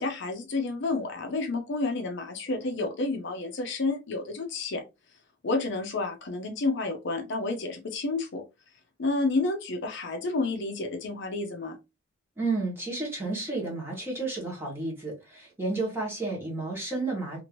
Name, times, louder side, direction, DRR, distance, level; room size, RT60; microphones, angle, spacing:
voice 1, 0.0-4.8 5.4-8.4 9.0-11.8, left 3 dB, 55° left, 0.5 m, -30 dB
voice 2, 12.4-17.4, right 3 dB, 10° right, 1.2 m, -31 dB
2.8 x 2.5 x 2.9 m
head